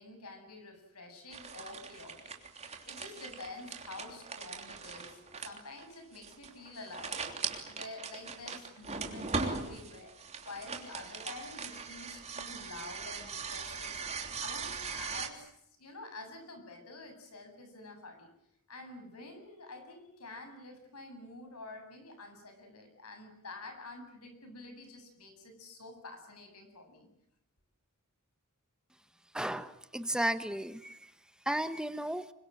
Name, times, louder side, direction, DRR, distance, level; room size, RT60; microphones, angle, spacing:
voice 1, 0.0-18.3 18.7-27.1, left 2 dB, 85° left, 6 dB, 7.9 m, -48 dB
sound 1, 1.3-15.3, right 4 dB, 30° right, 3.3 m, -40 dB
voice 2, 29.3-31.0 31.5-32.2, right 1 dB, 5° right, 11 dB, 1.0 m, -34 dB
27.0 x 24.5 x 7.7 m, 0.77 s
head